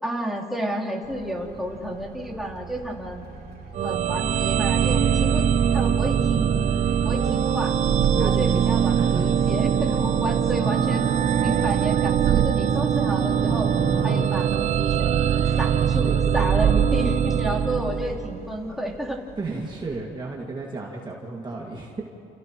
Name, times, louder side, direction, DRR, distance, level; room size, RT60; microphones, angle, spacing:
voice 1, 0.0-3.2 3.8-5.5 5.7-6.8 7.0-7.7 8.2-11.1 11.4-13.7 14.0-15.2 15.6-19.2, equal, ahead, -5 dB, 3.5 m, -31 dB
Traffic noise roadway noise, 1.0-20.0, right 3 dB, 65° right, 3.3 m, -45 dB
sound 1, 3.7-18.5, right 8 dB, 45° right, 0.6 m, -22 dB
voice 2, 8.1-9.4 19.4-22.0, right 3 dB, 25° right, -2 dB, 2.2 m, -33 dB
sound 2, 9.9-14.3, left 6 dB, 40° left, 0.9 m, -39 dB
30.0 x 29.5 x 3.1 m, 2.8 s
cardioid pair, 110°, 17 cm